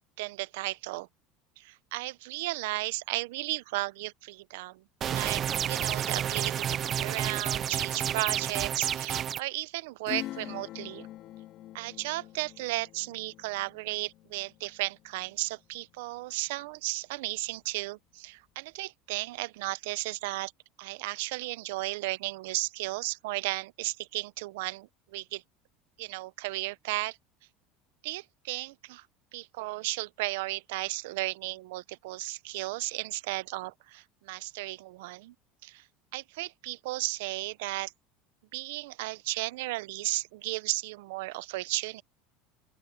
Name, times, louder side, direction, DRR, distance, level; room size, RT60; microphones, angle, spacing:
voice 1, 0.2-1.1 1.6-4.8 5.1-11.1 11.7-20.5 20.8-25.4 26.0-27.2 28.0-29.1 29.3-35.3 35.6-35.8 36.1-37.9 38.5-42.0, right 20 dB, 80° right, 0.6 m, -34 dB
sound 1, 5.0-9.4, right 9 dB, 25° right, 0.4 m, -30 dB
Acoustic guitar / Strum, 10.1-16.3 16.6-16.7, left 14 dB, 40° left, 3.1 m, -44 dB
open air
cardioid pair, 175°, 0 cm